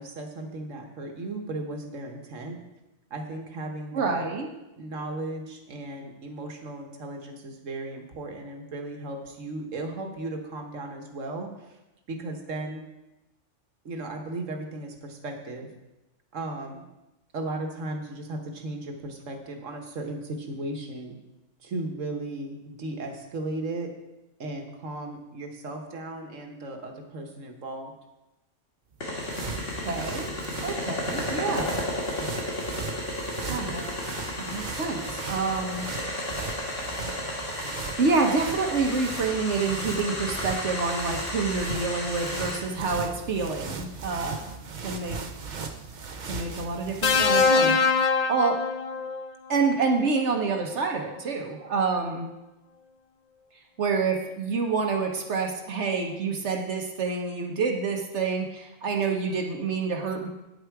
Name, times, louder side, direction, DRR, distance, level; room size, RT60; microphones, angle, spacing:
voice 1, 0.0-2.6 3.1-4.2 4.7-11.8 12.1-12.8 13.8-15.7 16.3-16.8 17.3-21.2 21.6-23.9 24.4-27.9, right 2 dB, 85° right, 4 dB, 1.6 m, -36 dB
voice 2, 3.9-4.5 29.8-30.3 30.6-31.8 33.5-33.8 34.4-35.9 38.0-44.4 44.8-45.2 46.2-48.0 48.3-48.6 49.5-52.3 53.8-60.3, right 4 dB, 65° right, 2 dB, 1.3 m, -27 dB
sound 1, 28.9-47.7, right 5 dB, 45° right, 0.8 m, -38 dB
sound 2, 29.0-42.6, left 1 dB, 80° left, 2.2 m, -33 dB
sound 3, 47.0-49.3 50.6-50.8, left 5 dB, 50° left, 0.5 m, -23 dB
9.4 x 8.1 x 4.7 m, 0.98 s
omnidirectional pair, 1.3 m